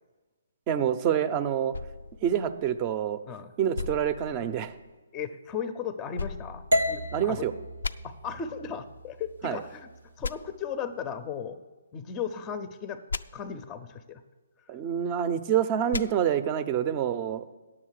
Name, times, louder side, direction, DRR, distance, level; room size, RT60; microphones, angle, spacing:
voice 1, 0.7-1.7 2.2-3.2 3.6-4.8 7.1-7.5 9.4-9.6 14.7-17.4, right 9 dB, 30° right, 13 dB, 0.6 m, -27 dB
sound 1, 1.7-3.2 3.7-5.0 6.2-7.3 7.8-7.9 10.2-10.3 13.1-13.2 15.9-16.0, left 4 dB, 80° left, 0.4 m, -36 dB
voice 2, 5.1-7.5 8.0-9.9 10.2-11.6 11.9-13.0 13.3-14.2 14.6-14.7, left 7 dB, 20° left, 11 dB, 0.6 m, -36 dB
sound 2, 6.7-10.8, left 1 dB, 75° right, 0.6 m, -33 dB
10.0 x 7.3 x 6.5 m, 1.2 s
hypercardioid pair, 145°, 0 cm